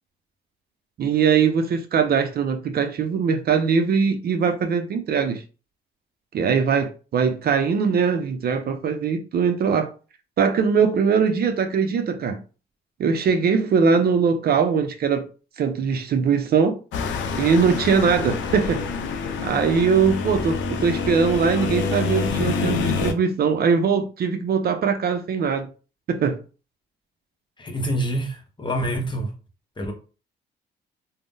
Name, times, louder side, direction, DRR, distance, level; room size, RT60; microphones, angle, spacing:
voice 1, 1.0-5.4 6.3-9.9 10.4-12.4 13.0-15.3 15.6-16.8 17.4-18.8 19.4-25.7 26.1-26.4, right 6 dB, 50° right, 0.5 m, -21 dB
sound 1, 16.9-23.1, left 4 dB, 70° left, 0.5 m, -26 dB
voice 2, 27.6-29.3 29.8-29.9, right 1 dB, 25° left, 0.8 m, -26 dB
2.5 x 2.0 x 3.6 m
cardioid pair, 90°, 20 cm